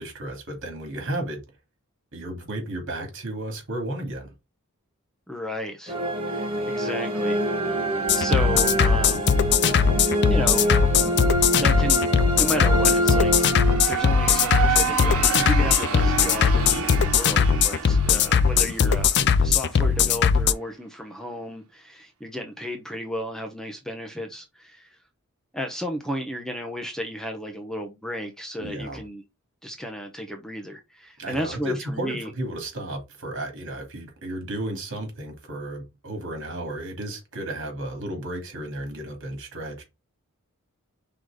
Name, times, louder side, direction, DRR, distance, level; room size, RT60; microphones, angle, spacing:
voice 1, 0.0-1.4 2.1-4.3 16.4-17.1 28.6-29.0 31.2-39.8, right 1 dB, 60° right, 2.8 m, -33 dB
voice 2, 5.3-6.0 6.3-7.7 8.1-9.4 10.3-10.7 11.6-13.5 13.9-25.0 25.5-29.2 29.6-32.3, equal, ahead, 0.9 m, -33 dB
sound 1, 5.9-14.2, right 1 dB, 25° right, 1.8 m, -26 dB
sound 2, 8.1-20.5, left 6 dB, 50° left, 0.5 m, -20 dB
sound 3, 13.0-19.8, right 6 dB, 75° right, 1.3 m, -29 dB
5.1 x 4.0 x 4.8 m
head